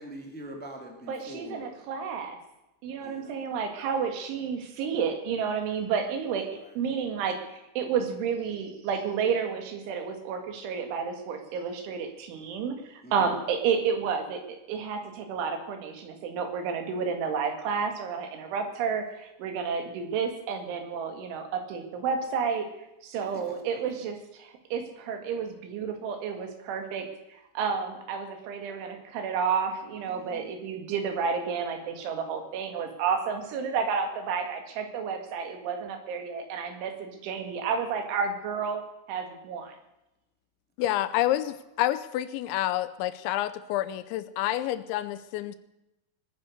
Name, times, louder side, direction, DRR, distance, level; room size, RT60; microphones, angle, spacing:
voice 1, 0.0-1.7 3.0-3.4 6.5-6.7 13.0-13.4 23.2-23.8 30.1-30.5, equal, 5° left, 2 dB, 1.3 m, -44 dB
voice 2, 1.1-2.4 2.8-14.4 14.7-22.7 23.0-38.8 39.1-39.8, right 6 dB, 80° right, 5 dB, 4.3 m, -31 dB
voice 3, 40.8-45.6, left 14 dB, 80° left, 14 dB, 2.9 m, -28 dB
21.0 x 10.0 x 6.6 m, 0.92 s
omnidirectional pair, 5.5 m